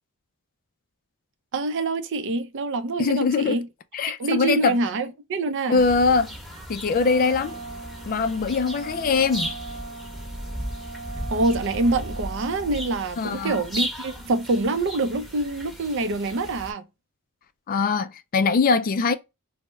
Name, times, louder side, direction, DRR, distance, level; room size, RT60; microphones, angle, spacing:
voice 1, 1.5-3.7 4.2-5.8 11.3-16.9, right 2 dB, 55° right, 0.5 m, -25 dB
voice 2, 3.0-3.6 3.9-4.8 5.7-6.3 6.7-7.6 8.1-9.5 13.2-13.6 17.7-19.2, left 4 dB, 40° left, 0.3 m, -22 dB
sound 1, 5.8-16.7, equal, ahead, 0.9 m, -36 dB
Wind instrument woodwind instrument, 6.9-12.9, right 4 dB, 40° right, 1.0 m, -40 dB
3.1 x 2.0 x 3.3 m
head